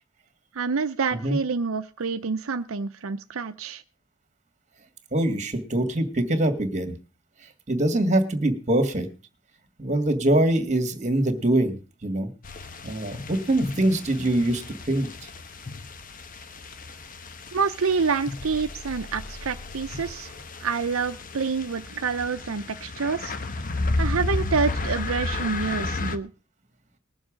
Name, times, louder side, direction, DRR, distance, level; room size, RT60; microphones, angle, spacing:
voice 1, 0.5-3.8 17.5-20.3 20.6-23.4 24.0-26.3, right 5 dB, 80° right, 8 dB, 0.6 m, -27 dB
voice 2, 5.1-7.0 7.7-9.1 9.8-11.8 12.0-12.3 12.8-14.6 14.9-15.1, right 1 dB, 35° right, 8 dB, 2.0 m, -23 dB
sound 1, 12.4-26.2, left 2 dB, 40° left, 1.0 m, -33 dB
20.5 x 7.2 x 5.0 m, 0.34 s
head